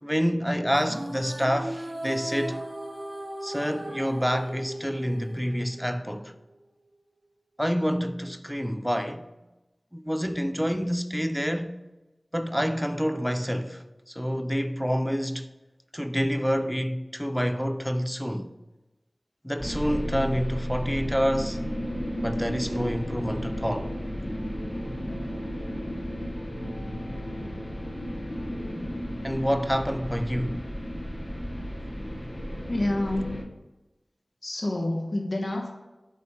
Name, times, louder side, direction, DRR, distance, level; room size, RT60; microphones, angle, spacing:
voice 1, 0.0-2.6 3.4-6.3 7.6-9.2 9.9-11.8 12.3-15.5 15.9-18.5 19.4-21.6 22.2-23.9 29.2-30.7, equal, ahead, 0.5 m, -28 dB
sound 1, 0.7-6.2, right 1 dB, 55° right, 1.2 m, -37 dB
sound 2, 19.6-33.4, equal, 15° left, 1.1 m, -34 dB
sound 3, 22.7-28.9, left 1 dB, 85° left, 1.3 m, -43 dB
voice 2, 32.7-33.4 34.4-35.7, left 1 dB, 55° left, 1.3 m, -28 dB
8.4 x 4.3 x 5.7 m
wide cardioid pair, 65°, 0 cm